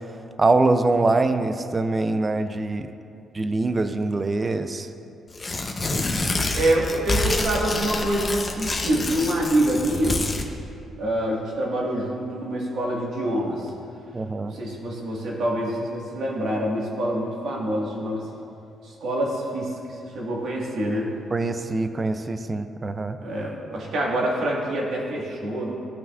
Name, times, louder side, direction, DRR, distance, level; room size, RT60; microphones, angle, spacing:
voice 1, 0.4-2.9 3.3-4.9 14.1-14.5 21.3-23.2, right 3 dB, 25° right, 9 dB, 0.4 m, -23 dB
Tearing, 5.3-10.5, left 2 dB, 25° left, 0.7 m, -27 dB
voice 2, 6.5-10.2 11.0-13.7 14.4-18.3 18.8-19.7 20.1-21.1 23.2-25.8, right 1 dB, 70° right, -3 dB, 1.6 m, -26 dB
14.5 x 5.8 x 2.4 m, 2.6 s
cardioid pair, 105°, 0 cm